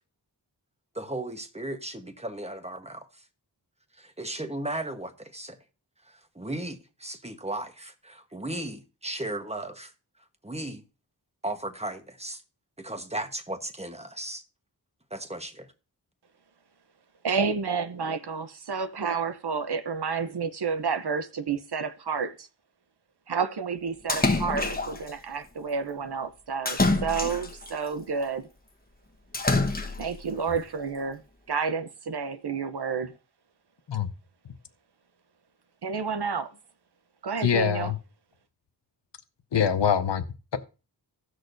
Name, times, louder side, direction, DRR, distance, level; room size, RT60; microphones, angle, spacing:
voice 1, 0.9-3.1 4.0-5.6 6.3-9.9 10.4-10.8 11.4-12.4 12.8-14.4 15.1-15.7, right 1 dB, 15° right, 1.2 m, -35 dB
voice 2, 17.2-22.5 23.3-28.5 30.0-31.2 31.5-33.1 35.8-36.5 37.2-37.9, right 5 dB, 65° right, 0.8 m, -30 dB
Splash splatter, 24.1-25.1 26.7-27.7 29.3-30.2, left 2 dB, 20° left, 1.1 m, -26 dB
voice 3, 37.4-37.9 39.5-40.2, left 8 dB, 80° left, 0.8 m, -24 dB
17.0 x 6.3 x 2.6 m
wide cardioid pair, 65°, 42 cm